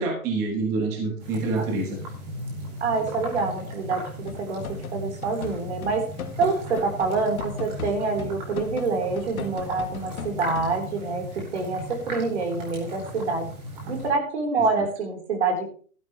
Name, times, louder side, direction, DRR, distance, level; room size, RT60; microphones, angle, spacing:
voice 1, 0.0-2.0 14.7-14.8, right 3 dB, 10° right, 1 dB, 1.1 m, -27 dB
sound 1, 1.2-14.1, equal, 30° right, 4.7 m, -37 dB
voice 2, 2.8-4.6 4.9-6.0 6.4-13.5 13.9-15.6, right 4 dB, 50° right, 2 dB, 3.9 m, -26 dB
sound 2, 4.3-10.7, left 7 dB, 75° left, 1.7 m, -38 dB
13.5 x 12.5 x 3.2 m, 0.43 s
hypercardioid pair, 175°, 43 cm